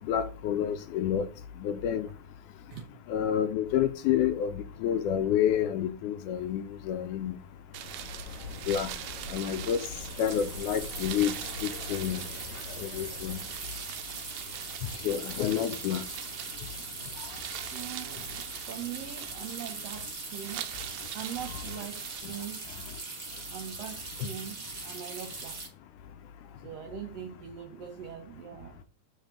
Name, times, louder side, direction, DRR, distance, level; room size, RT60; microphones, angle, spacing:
voice 1, 0.1-1.3 1.6-2.1 3.1-7.4 8.7-8.9 9.3-9.8 10.2-12.2 12.8-13.4 15.0-16.0, left 9 dB, 75° left, 2.0 m, -29 dB
sound 1, 6.6-6.7 6.9-7.2 8.5-25.7, right 3 dB, 50° right, 0.8 m, -41 dB
sound 2, 7.7-22.2, right 12 dB, 90° right, 2.3 m, -43 dB
sound 3, 7.8-13.5, left 3 dB, 45° left, 1.4 m, -44 dB
voice 2, 17.7-20.7 21.1-22.6 23.5-25.6 26.6-28.8, right 9 dB, 75° right, 1.5 m, -42 dB
7.4 x 7.1 x 3.6 m
omnidirectional pair, 3.8 m